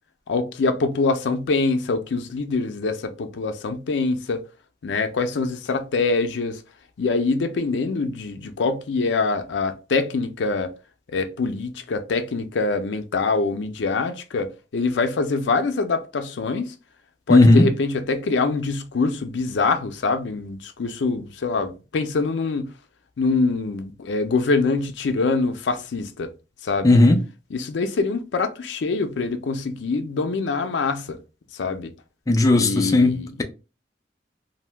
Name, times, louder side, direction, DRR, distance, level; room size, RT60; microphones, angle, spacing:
voice 1, 0.3-4.4 4.8-6.6 7.0-10.7 11.1-16.7 17.3-22.7 23.2-26.3 26.6-27.0 27.5-31.2 31.5-31.9 32.5-33.3, left 3 dB, 85° left, 0.4 m, -24 dB
voice 2, 17.3-17.7 26.8-27.2 32.3-33.4, left 2 dB, 20° left, 0.4 m, -15 dB
2.6 x 2.1 x 3.2 m
head